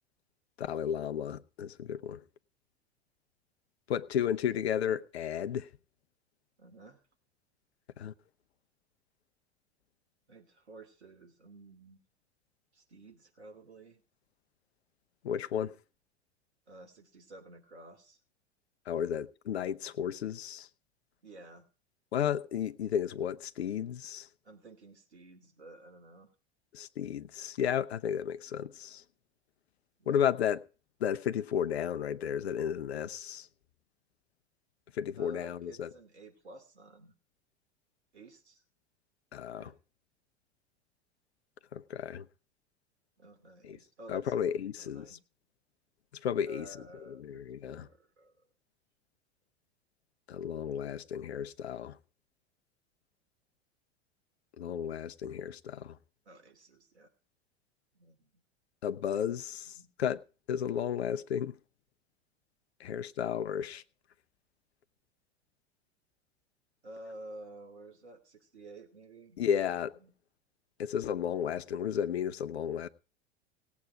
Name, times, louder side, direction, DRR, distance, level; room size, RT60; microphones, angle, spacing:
voice 1, 0.6-2.2 3.9-5.7 8.0-8.1 15.2-15.7 18.9-20.7 22.1-24.3 26.7-29.0 30.1-30.6 31.0-33.5 34.9-35.9 39.3-39.7 41.7-42.3 43.6-43.8 44.1-45.2 46.2-46.7 47.1-47.9 50.3-52.0 54.6-56.0 58.8-60.2 60.5-61.5 62.8-63.8 69.4-70.0 70.8-72.9, left 9 dB, 70° left, 0.9 m, -33 dB
voice 2, 6.6-7.0 10.3-12.0 12.7-14.0 16.7-18.2 21.2-21.6 24.4-26.3 30.0-30.2 35.2-37.1 38.1-38.6 39.5-39.8 43.2-45.2 46.4-48.5 56.2-57.1 57.9-58.3 59.7-59.9 66.8-69.4 70.0-70.1, right 2 dB, 75° right, 2.8 m, -52 dB
17.5 x 8.4 x 5.0 m
figure-of-eight pair, 85°, 33 cm